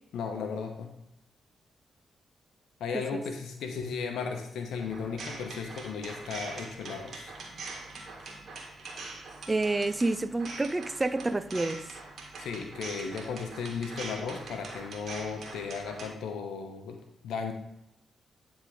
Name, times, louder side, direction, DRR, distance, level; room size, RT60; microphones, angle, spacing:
voice 1, 0.1-0.9 2.8-7.3 12.4-17.5, left 5 dB, 80° left, 0.8 m, -35 dB
sound 1, 4.7-16.1, right 3 dB, 60° right, 1.7 m, -43 dB
voice 2, 9.5-11.9, right 2 dB, 25° right, 0.5 m, -28 dB
9.9 x 3.5 x 4.8 m
supercardioid pair, 50°, 0 cm